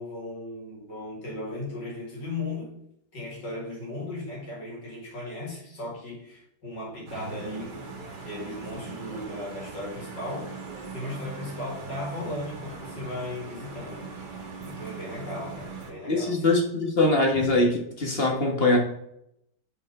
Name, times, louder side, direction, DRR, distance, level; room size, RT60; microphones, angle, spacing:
voice 1, 0.0-2.8 3.1-7.9 8.2-10.6 10.9-16.5, left 1 dB, 70° left, -4 dB, 3.0 m, -36 dB
sound 1, 7.1-15.9, right 4 dB, 70° right, 2.0 m, -40 dB
voice 2, 16.1-18.8, left 2 dB, 35° left, 1 dB, 1.5 m, -22 dB
5.5 x 5.4 x 4.8 m, 0.76 s
omnidirectional pair, 2.0 m